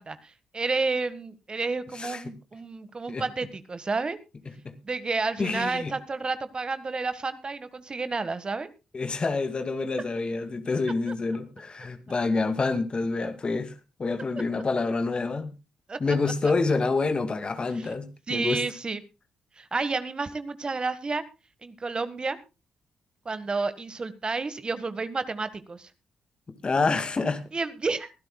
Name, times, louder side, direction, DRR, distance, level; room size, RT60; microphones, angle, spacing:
voice 1, 0.0-4.2 4.8-8.7 11.1-11.2 15.9-16.1 17.7-17.9 18.3-19.0 19.6-21.2 21.6-22.4 23.2-25.9 27.5-28.1, right 3 dB, 35° right, 1.5 m, -30 dB
voice 2, 5.4-5.9 8.9-13.7 14.0-15.5 16.0-18.6 26.6-27.4, left 3 dB, 40° left, 2.2 m, -27 dB
23.5 x 12.0 x 2.3 m
hypercardioid pair, 50°, 3 cm